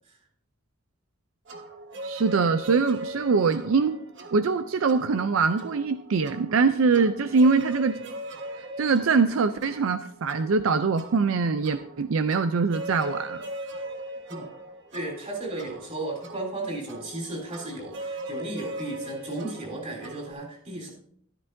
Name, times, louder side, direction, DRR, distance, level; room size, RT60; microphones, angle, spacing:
sound 1, 1.5-20.3, right 1 dB, 60° right, 1.4 m, -40 dB
voice 1, 2.0-4.0 4.3-8.0 8.8-13.4, right 4 dB, 80° right, 11 dB, 0.5 m, -23 dB
voice 2, 14.9-20.9, right 2 dB, 35° right, 0 dB, 3.7 m, -34 dB
13.0 x 12.5 x 2.6 m, 0.63 s
head